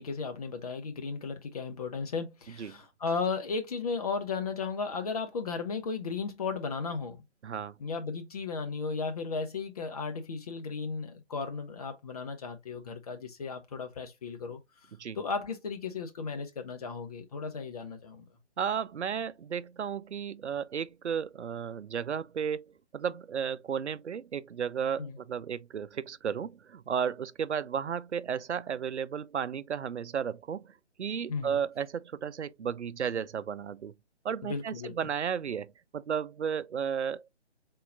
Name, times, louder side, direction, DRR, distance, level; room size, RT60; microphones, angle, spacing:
voice 1, 0.0-7.2 7.8-14.6 15.1-18.2 25.0-25.2 31.3-31.6 34.4-35.1, left 4 dB, 35° left, 0.8 m, -35 dB
voice 2, 7.4-7.7 15.0-15.2 18.6-33.9 34.2-37.3, right 7 dB, 75° right, 0.5 m, -34 dB
4.1 x 3.7 x 2.6 m
figure-of-eight pair, 150°, 35 cm